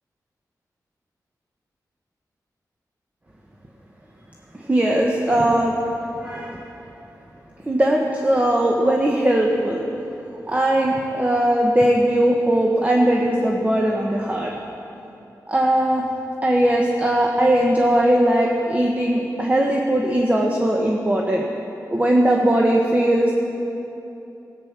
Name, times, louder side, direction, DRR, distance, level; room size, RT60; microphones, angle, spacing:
voice 1, 4.5-5.8 6.2-6.7 7.7-9.8 10.5-14.5 15.5-16.1 16.4-21.4 21.9-23.3, right 1 dB, 20° right, 0 dB, 1.2 m, -19 dB
17.5 x 9.0 x 5.9 m, 3.0 s
wide cardioid pair, 90°, 7 cm